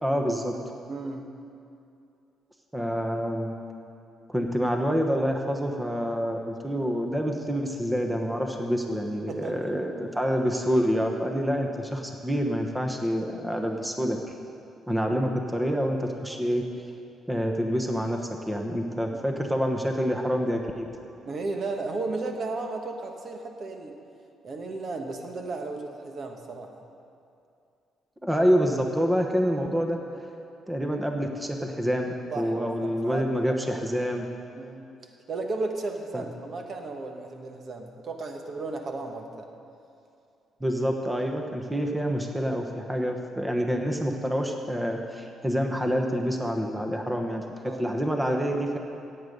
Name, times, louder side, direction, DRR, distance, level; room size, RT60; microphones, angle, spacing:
voice 1, 0.0-0.5 2.7-3.5 4.3-14.2 14.9-16.6 17.3-18.2 18.5-20.9 28.2-30.0 30.7-34.3 36.1-36.2 40.6-47.4 47.8-48.8, equal, 10° right, 3 dB, 1.1 m, -27 dB
voice 2, 0.9-1.3 9.3-9.6 21.2-24.0 24.4-26.8 32.3-33.6 34.5-34.8 35.3-39.5 47.7-47.8, right 3 dB, 50° right, 4 dB, 1.3 m, -34 dB
16.5 x 8.0 x 5.4 m, 2.6 s
cardioid pair, 90°, 0 cm